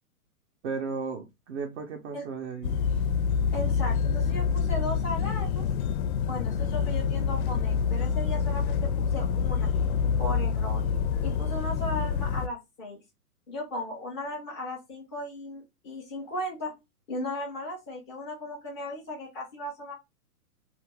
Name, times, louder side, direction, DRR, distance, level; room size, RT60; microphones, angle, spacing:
voice 1, 0.6-2.9, right 5 dB, 50° right, 0.7 m, -35 dB
sound 1, 2.6-12.5, left 6 dB, 70° left, 0.5 m, -27 dB
voice 2, 3.5-5.6 6.2-9.7 10.2-10.8 11.2-13.0 13.5-16.7 17.1-19.9, left 1 dB, ahead, 0.3 m, -36 dB
2.5 x 2.4 x 3.1 m
hypercardioid pair, 145°, 45 cm